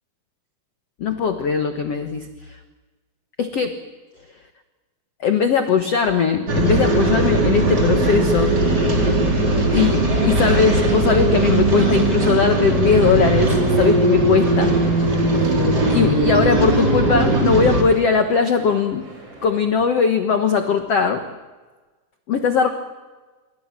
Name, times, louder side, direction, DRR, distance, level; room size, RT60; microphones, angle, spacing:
voice 1, 1.0-2.6 3.4-3.7 5.2-8.9 9.7-15.1 15.9-19.1 19.4-21.2 22.3-22.7, left 6 dB, 65° left, 7 dB, 1.5 m, -20 dB
sound 1, 6.5-17.8, right 2 dB, 25° right, 4.5 m, -18 dB
sound 2, 9.5-19.7, right 2 dB, 55° right, 8.4 m, -37 dB
27.0 x 24.0 x 7.5 m, 1.3 s
omnidirectional pair, 4.8 m